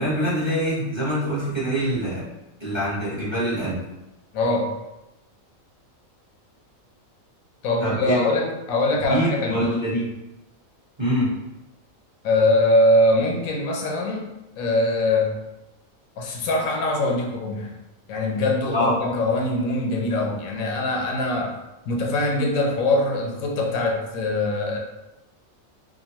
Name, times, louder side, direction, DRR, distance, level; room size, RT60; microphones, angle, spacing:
voice 1, 0.0-2.3 2.6-3.8 7.8-8.3 9.1-10.1 11.0-11.3 18.7-18.9, equal, 25° right, -10 dB, 0.9 m, -24 dB
voice 2, 4.3-4.7 7.6-9.7 12.2-15.4 16.2-17.8 18.1-21.6 21.9-24.8, left 1 dB, 80° left, 1 dB, 1.0 m, -22 dB
2.9 x 2.1 x 2.8 m, 0.97 s
omnidirectional pair, 1.4 m